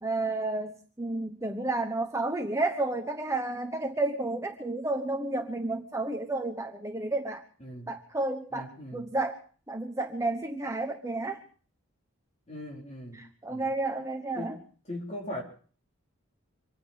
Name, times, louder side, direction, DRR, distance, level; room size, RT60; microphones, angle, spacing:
voice 1, 0.0-7.4 7.9-9.4 9.7-11.4 13.1-14.6, right 2 dB, 15° right, 4 dB, 1.1 m, -31 dB
voice 2, 7.6-7.9 8.5-9.0 12.5-13.7 14.3-14.5 14.9-15.4, left 1 dB, 30° left, 0 dB, 4.3 m, -40 dB
25.5 x 9.8 x 5.7 m, 0.44 s
head